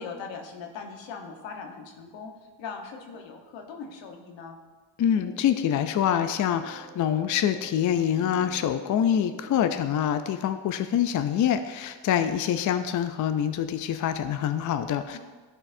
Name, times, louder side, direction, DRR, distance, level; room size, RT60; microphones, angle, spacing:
voice 1, 0.0-2.3 2.6-4.6 15.1-15.2, left 5 dB, 80° left, 3 dB, 1.2 m, -40 dB
voice 2, 5.0-15.2, left 9 dB, 45° left, 9 dB, 0.4 m, -25 dB
sound 1, 5.1-10.0, right 2 dB, 10° right, 2.0 m, -48 dB
13.5 x 4.5 x 2.6 m, 1.4 s
cardioid pair, 95°, 44 cm